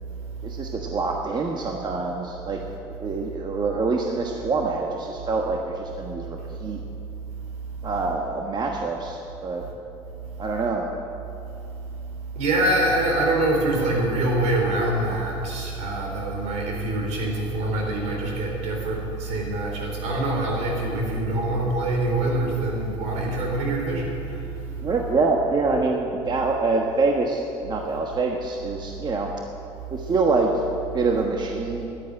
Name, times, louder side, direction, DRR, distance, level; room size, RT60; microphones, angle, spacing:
voice 1, 0.4-2.6 3.0-6.8 7.8-9.6 10.4-10.9 24.8-29.3 29.9-30.5 30.9-31.9, right 3 dB, 40° right, 2 dB, 1.3 m, -25 dB
voice 2, 12.4-24.1, right 1 dB, 75° right, -1 dB, 3.9 m, -24 dB
11.0 x 9.4 x 9.7 m, 2.9 s
supercardioid pair, 80°, 12 cm